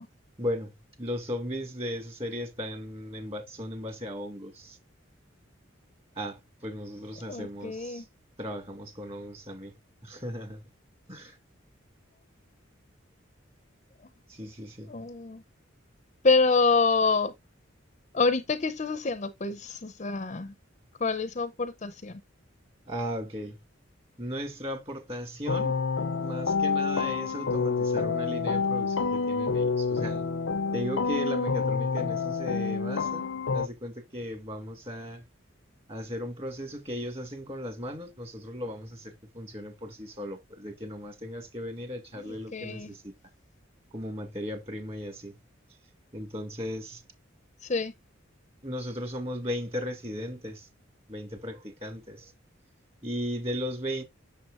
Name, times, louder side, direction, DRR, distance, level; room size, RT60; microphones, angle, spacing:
voice 1, 0.4-0.7 1.0-4.8 6.2-8.0 8.4-9.7 10.0-10.6 11.1-11.4 14.3-14.9 22.9-23.6 24.2-25.8 26.2-30.2 30.7-33.3 33.5-35.2 35.9-43.1 43.9-45.3 46.1-47.0 48.6-50.7 51.1-52.3 53.0-54.0, equal, 30° right, 2.3 m, -36 dB
voice 2, 7.3-8.0 14.9-15.4 16.2-17.3 18.1-20.5 21.0-22.2 42.2-42.9 47.6-47.9, left 4 dB, 35° left, 0.6 m, -27 dB
sound 1, 25.5-33.7, left 4 dB, 75° left, 0.6 m, -28 dB
7.6 x 6.9 x 2.5 m
head